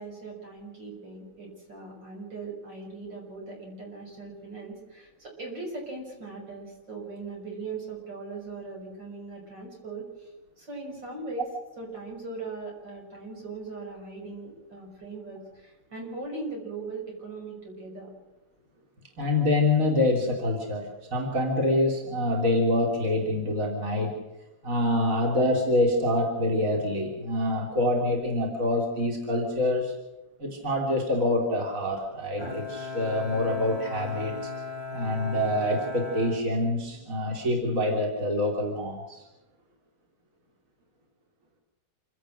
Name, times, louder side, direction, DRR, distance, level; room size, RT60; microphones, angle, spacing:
voice 1, 0.0-10.3 10.6-11.5 11.8-18.1, right 3 dB, 80° right, 0 dB, 7.3 m, -39 dB
voice 2, 19.2-24.1 24.6-29.9 30.4-34.3 34.9-39.2, left 1 dB, 45° right, 0 dB, 3.6 m, -26 dB
Bowed string instrument, 32.4-37.2, left 4 dB, 15° right, 2.2 m, -37 dB
27.5 x 17.0 x 6.3 m, 1.1 s
omnidirectional pair, 2.0 m